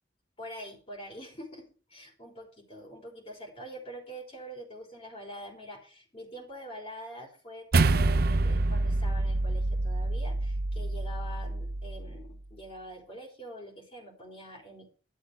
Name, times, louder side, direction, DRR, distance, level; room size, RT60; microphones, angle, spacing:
voice 1, 0.4-14.9, equal, 35° left, 0 dB, 3.7 m, -45 dB
sound 1, 7.7-12.3, right 2 dB, 60° right, 0.7 m, -27 dB
12.0 x 10.5 x 4.8 m, 0.39 s
head